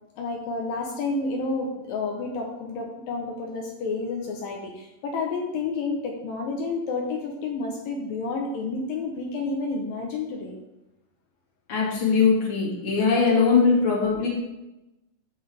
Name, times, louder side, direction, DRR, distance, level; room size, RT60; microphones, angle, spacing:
voice 1, 0.2-10.6, left 3 dB, 75° left, -1 dB, 2.7 m, -30 dB
voice 2, 11.7-14.3, left 5 dB, 35° left, -4 dB, 2.7 m, -21 dB
14.0 x 6.4 x 3.5 m, 0.95 s
omnidirectional pair, 4.2 m